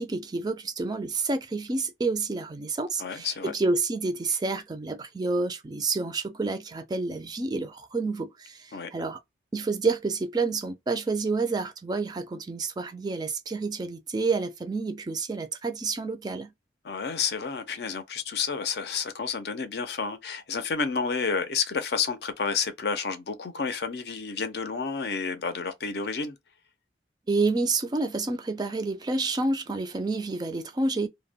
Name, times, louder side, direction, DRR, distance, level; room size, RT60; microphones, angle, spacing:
voice 1, 0.0-9.2 9.5-16.5 27.3-31.1, right 3 dB, 25° right, 0.3 m, -29 dB
voice 2, 3.0-3.5 8.7-8.9 16.8-26.4, left 5 dB, 65° left, 0.5 m, -30 dB
2.2 x 2.1 x 3.3 m
head